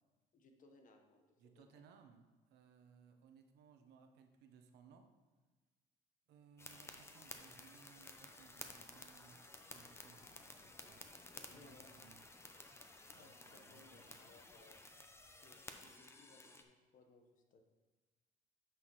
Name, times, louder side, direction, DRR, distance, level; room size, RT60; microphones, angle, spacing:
voice 1, 0.3-1.8 11.3-12.0 13.2-14.8 15.1-17.6, left 3 dB, 50° left, 4 dB, 1.2 m, -65 dB
voice 2, 1.4-2.2 2.5-5.1 6.3-9.4 9.7-12.2 13.1-14.4, right 6 dB, 80° right, 6 dB, 0.9 m, -64 dB
sound 1, 6.6-16.6, left 2 dB, 15° left, 0.7 m, -55 dB
9.5 x 6.2 x 3.1 m, 1.2 s
cardioid pair, 110°, 17 cm